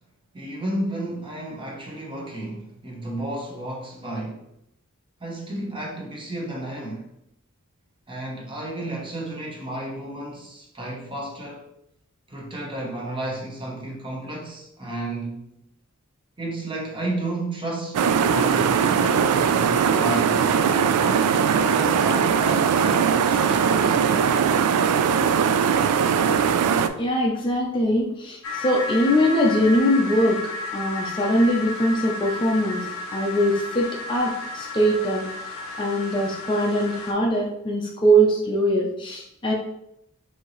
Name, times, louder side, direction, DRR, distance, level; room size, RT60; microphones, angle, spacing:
voice 1, 0.3-4.5 5.2-7.1 8.1-11.7 12.3-15.5 16.4-20.6 20.9-24.4, right 1 dB, 25° right, 0.9 m, -32 dB
sound 1, 17.9-26.9, right 7 dB, 80° right, 0.3 m, -20 dB
voice 2, 26.9-30.4 30.7-32.9 33.1-35.3 35.5-39.5, equal, 20° left, 0.5 m, -22 dB
sound 2, 28.4-37.1, left 2 dB, 65° left, 0.7 m, -33 dB
4.4 x 2.8 x 3.0 m
head